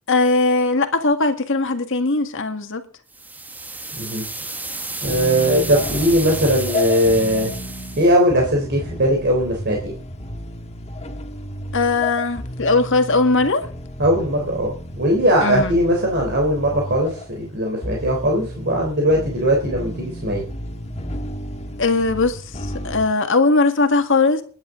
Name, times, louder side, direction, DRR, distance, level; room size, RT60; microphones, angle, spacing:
voice 1, 0.1-2.8 11.7-13.7 15.4-15.8 21.8-24.4, left 3 dB, 60° left, 1.8 m, -19 dB
sound 1, 3.1-8.2, right 2 dB, 10° right, 1.1 m, -32 dB
sound 2, 5.0-23.0, left 1 dB, 30° left, 1.5 m, -32 dB
voice 2, 5.0-7.5 7.9-9.9 14.0-20.4, equal, 50° right, 3.5 m, -19 dB
21.0 x 10.5 x 3.8 m
head